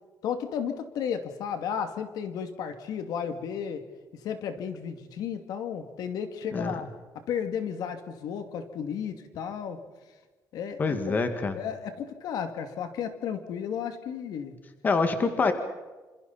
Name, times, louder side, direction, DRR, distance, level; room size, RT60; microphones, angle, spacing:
voice 1, 0.2-3.8 4.2-6.9 7.1-9.8 10.5-11.1 11.5-14.6, left 7 dB, 70° left, 7 dB, 2.5 m, -33 dB
voice 2, 10.8-11.6 14.8-15.5, left 4 dB, 25° left, 7 dB, 1.9 m, -25 dB
28.5 x 26.5 x 4.3 m, 1.3 s
cardioid pair, 180°, 7 cm